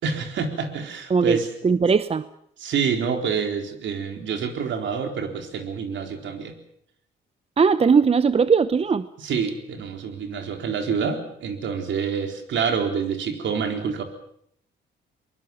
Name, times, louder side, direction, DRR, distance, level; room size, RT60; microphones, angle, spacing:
voice 1, 0.0-1.5 2.6-6.6 9.2-14.0, right 6 dB, 70° right, 5 dB, 4.1 m, -27 dB
voice 2, 1.1-2.3 7.6-9.1, right 5 dB, 30° right, 14 dB, 0.8 m, -19 dB
23.0 x 21.0 x 7.2 m, 0.68 s
cardioid pair, 90°, 20 cm